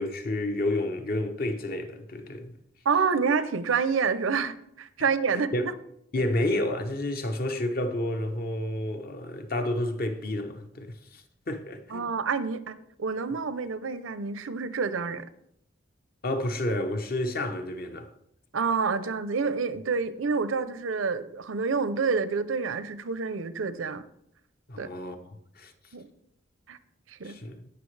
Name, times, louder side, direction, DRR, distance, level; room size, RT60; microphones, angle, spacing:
voice 1, 0.0-2.6 5.3-5.7 6.1-12.1 16.2-18.1 24.7-25.7 27.2-27.6, left 1 dB, 45° left, 0.9 m, -30 dB
voice 2, 2.8-5.5 11.9-15.2 18.5-24.0 24.8-24.9 25.9-26.0 26.7-26.8 27.1-27.4, right 5 dB, 80° right, 0.6 m, -28 dB
16.5 x 5.9 x 3.3 m
head